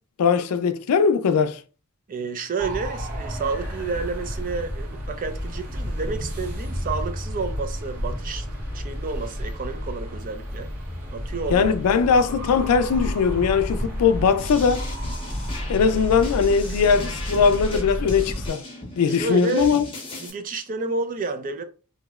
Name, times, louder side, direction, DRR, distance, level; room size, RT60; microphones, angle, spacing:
voice 1, 0.2-1.6 11.5-14.9 15.7-18.6 19.0-19.8, left 6 dB, 85° left, 0.4 m, -20 dB
voice 2, 2.1-8.5 8.7-10.7 11.1-11.7 17.7-17.8 19.1-19.7 20.2-21.6, right 4 dB, 40° right, 0.4 m, -30 dB
sound 1, 2.6-18.5, equal, 85° right, 1.4 m, -31 dB
sound 2, 14.4-20.3, left 2 dB, 25° left, 0.7 m, -38 dB
3.0 x 2.7 x 2.3 m
head